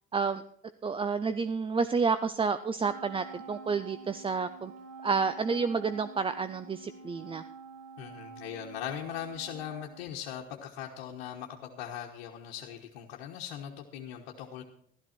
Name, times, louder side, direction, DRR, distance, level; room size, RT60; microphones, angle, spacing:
voice 1, 0.8-4.7 5.0-7.4, right 5 dB, 20° right, 12 dB, 0.4 m, -30 dB
Wind instrument woodwind instrument, 2.8-10.4, right 5 dB, 90° right, 1.5 m, -47 dB
voice 2, 8.0-14.6, left 10 dB, 85° left, -2 dB, 1.3 m, -40 dB
12.5 x 12.5 x 4.4 m, 0.65 s
supercardioid pair, 85°, 30 cm